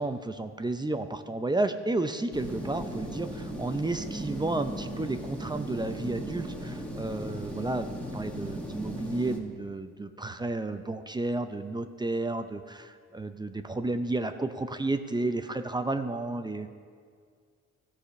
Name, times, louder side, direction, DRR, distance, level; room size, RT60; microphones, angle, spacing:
voice 1, 0.0-16.7, right 2 dB, 15° right, 8 dB, 0.5 m, -32 dB
sound 1, 2.3-9.4, right 1 dB, 5° left, 1.6 m, -37 dB
14.5 x 5.0 x 7.0 m, 2.1 s
cardioid pair, 90°, 30 cm